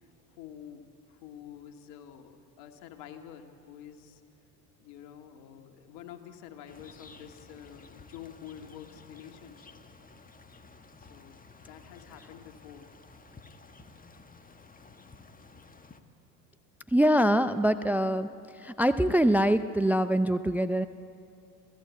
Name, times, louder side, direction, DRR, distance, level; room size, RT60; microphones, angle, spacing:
voice 1, 0.0-4.2 4.8-9.8 11.0-12.9, left 9 dB, 65° left, 5 dB, 2.2 m, -48 dB
sound 1, 6.7-16.0, left 4 dB, 15° left, 1.5 m, -53 dB
voice 2, 16.9-18.3 18.5-20.9, equal, 5° right, 13 dB, 0.5 m, -24 dB
27.0 x 16.0 x 8.4 m, 2.6 s
hypercardioid pair, 65°, 49 cm